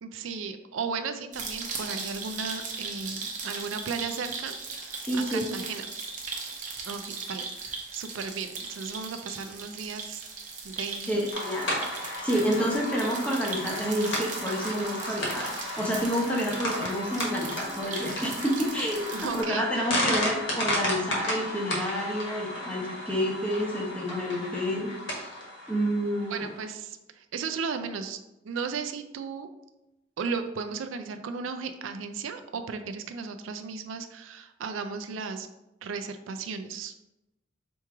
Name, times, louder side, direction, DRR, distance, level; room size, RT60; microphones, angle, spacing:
voice 1, 0.0-5.9 6.9-10.2 10.6-11.2 19.1-19.9 26.3-28.2 28.4-29.5 30.2-35.5 35.8-36.9, right 5 dB, 80° right, 8 dB, 0.4 m, -35 dB
sound 1, 1.3-19.4, right 4 dB, 40° right, 0.7 m, -38 dB
voice 2, 5.0-5.5 11.1-11.7 12.2-25.3 25.7-26.5, equal, 5° left, -2 dB, 0.8 m, -29 dB
sound 2, 11.3-26.7, equal, 70° left, 1.4 m, -33 dB
3.5 x 3.0 x 4.6 m, 0.93 s
head